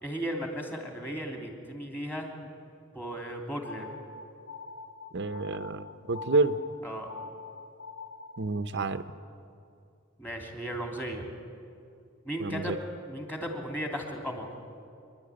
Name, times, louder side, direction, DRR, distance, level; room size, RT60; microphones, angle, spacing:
voice 1, 0.0-2.5 2.9-3.9 6.8-7.1 10.2-11.3 12.2-12.7 13.1-14.5, equal, 10° left, 1 dB, 2.9 m, -36 dB
sound 1, 3.6-8.5, left 4 dB, 70° left, 1.5 m, -44 dB
voice 2, 5.1-6.6 8.4-9.1 12.4-12.7, right 3 dB, 60° right, 11 dB, 0.8 m, -29 dB
26.5 x 11.0 x 9.8 m, 2.5 s
head